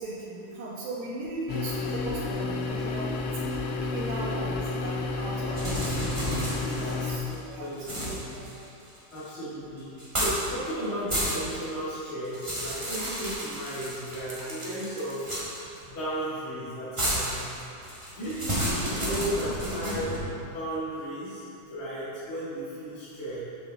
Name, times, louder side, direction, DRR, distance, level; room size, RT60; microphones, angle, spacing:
voice 1, 0.0-3.1 3.8-6.0 6.8-7.9 8.3-8.5, right 2 dB, 70° right, -8 dB, 2.2 m, -37 dB
sound 1, 1.5-7.2, left 3 dB, 80° left, 1.4 m, -31 dB
sound 2, 5.5-7.3 7.8-9.3 10.0-10.5 10.8-11.6 12.0-15.8 17.0-20.2, equal, 15° right, 1.0 m, -31 dB
voice 2, 6.6-8.2 9.1-15.3 15.8-17.4 18.1-20.1 20.4-23.4, right 1 dB, 45° left, -12 dB, 2.4 m, -35 dB
7.6 x 6.9 x 3.9 m, 2.7 s
omnidirectional pair, 3.5 m